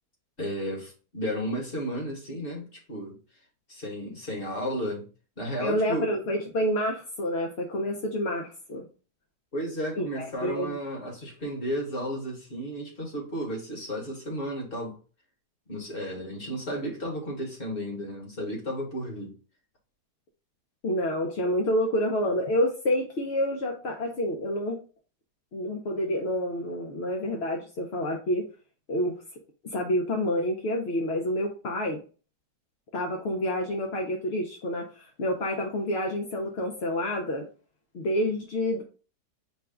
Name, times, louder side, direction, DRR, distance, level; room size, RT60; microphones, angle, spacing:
voice 1, 0.4-3.1 3.7-5.0 5.4-6.1 9.5-15.0 15.7-19.3, equal, 35° left, 1.5 m, -33 dB
voice 2, 5.6-8.8 10.0-10.8 20.8-24.8 25.5-28.5 28.9-29.2 29.7-32.0 32.9-37.5 37.9-38.8, left 1 dB, 55° left, 0.7 m, -28 dB
4.6 x 2.3 x 4.8 m
omnidirectional pair, 1.7 m